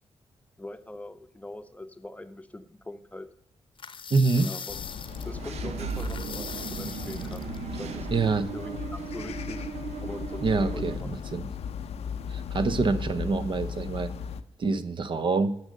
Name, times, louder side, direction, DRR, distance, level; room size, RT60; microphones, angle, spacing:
voice 1, 0.6-3.3 4.4-7.4 7.8-9.6 10.0-11.1, left 1 dB, 15° left, 9 dB, 0.7 m, -42 dB
sound 1, 3.8-5.4 5.9-7.6, left 6 dB, 55° left, 0.8 m, -40 dB
voice 2, 4.1-4.5 8.1-8.4 10.4-11.5 12.3-14.1 14.6-15.5, right 4 dB, 50° right, 11 dB, 0.8 m, -26 dB
sound 2, 4.7-14.4, left 7 dB, 85° left, 0.6 m, -37 dB
Engine / Mechanisms, 5.0-11.0, right 6 dB, 85° right, 0.8 m, -37 dB
10.5 x 6.4 x 6.5 m, 0.77 s
cardioid pair, 95°, 11 cm